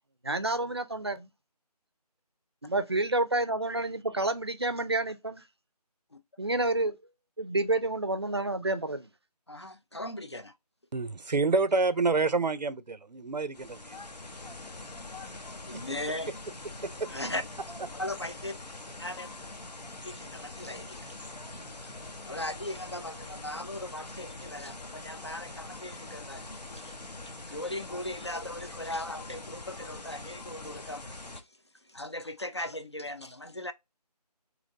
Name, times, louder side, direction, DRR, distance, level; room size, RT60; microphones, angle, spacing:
voice 1, 0.2-1.3 2.6-5.4 6.4-7.0 7.4-9.1, right 2 dB, 40° right, 0.4 m, -29 dB
voice 2, 9.5-10.5 15.7-16.3 17.1-17.4 18.0-18.5 19.0-19.3 20.0-21.2 21.8-21.9 22.2-26.9 27.5-31.4 31.9-33.7, left 1 dB, 45° left, 0.4 m, -38 dB
voice 3, 10.9-14.0 16.8-17.1, right 3 dB, 90° right, 0.5 m, -28 dB
sound 1, 13.5-31.4, left 2 dB, 80° left, 0.8 m, -43 dB
3.9 x 2.9 x 3.8 m
figure-of-eight pair, 160°, 21 cm